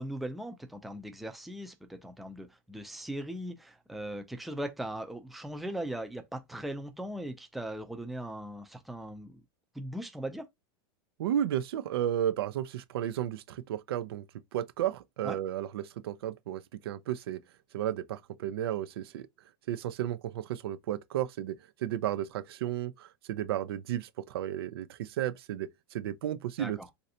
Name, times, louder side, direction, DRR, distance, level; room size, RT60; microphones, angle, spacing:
voice 1, 0.0-9.4 9.7-10.5 15.2-15.4 26.6-26.9, right 1 dB, ahead, 0.4 m, -39 dB
voice 2, 11.2-14.2 14.5-17.4 17.7-19.3 19.7-26.8, right 11 dB, 85° right, 0.4 m, -33 dB
3.2 x 2.6 x 2.7 m
supercardioid pair, 150°, 12 cm